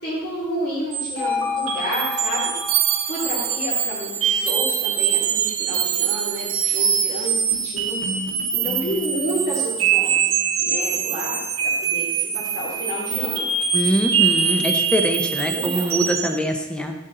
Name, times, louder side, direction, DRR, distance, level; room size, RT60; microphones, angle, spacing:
voice 1, 0.0-2.5 3.0-7.4 7.6-8.0 8.6-12.1 12.3-13.4 15.4-15.9, equal, 50° left, -9 dB, 3.0 m, -30 dB
sound 1, 0.9-16.4, right 7 dB, 75° right, 1.3 m, -23 dB
voice 2, 13.7-16.9, equal, 5° left, 4 dB, 1.0 m, -23 dB
12.0 x 8.1 x 4.0 m, 1.1 s
head